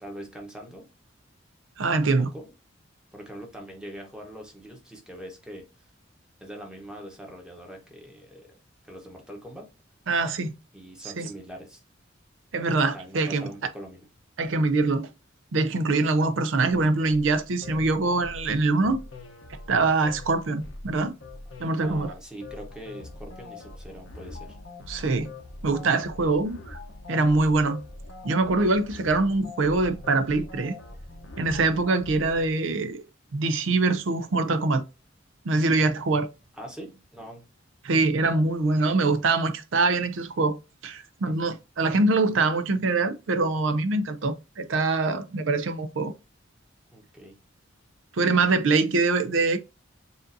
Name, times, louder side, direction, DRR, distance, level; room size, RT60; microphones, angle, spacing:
voice 1, 0.0-0.9 2.2-2.5 3.1-5.6 6.4-8.5 8.8-9.7 10.7-11.8 12.7-14.0 21.8-24.6 36.5-37.4 41.2-41.3 46.9-47.4, right 1 dB, 5° right, 1.0 m, -42 dB
voice 2, 1.8-2.3 10.1-10.6 11.0-11.3 12.5-13.5 14.4-15.1 15.5-19.0 19.7-21.1 21.6-22.1 24.9-25.3 25.6-26.8 27.1-27.8 28.2-30.8 31.4-33.0 33.3-34.8 35.4-36.3 37.8-40.6 40.8-46.1 48.1-49.6, right 3 dB, 75° right, 0.5 m, -24 dB
sound 1, 16.7-32.5, left 2 dB, 90° left, 0.8 m, -43 dB
6.8 x 2.6 x 2.6 m
head